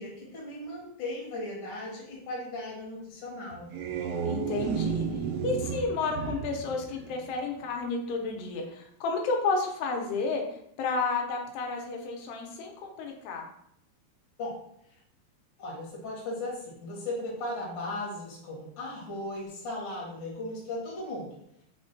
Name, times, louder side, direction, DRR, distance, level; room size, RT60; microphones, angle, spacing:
voice 1, 0.0-3.7 14.4-14.5 15.6-21.3, left 1 dB, 70° left, -5 dB, 1.2 m, -37 dB
sound 1, 3.5-7.7, right 7 dB, 85° right, 2.5 m, -33 dB
voice 2, 4.2-13.5, left 3 dB, 85° left, 2 dB, 2.7 m, -31 dB
5.9 x 2.1 x 2.6 m, 0.74 s
omnidirectional pair, 4.5 m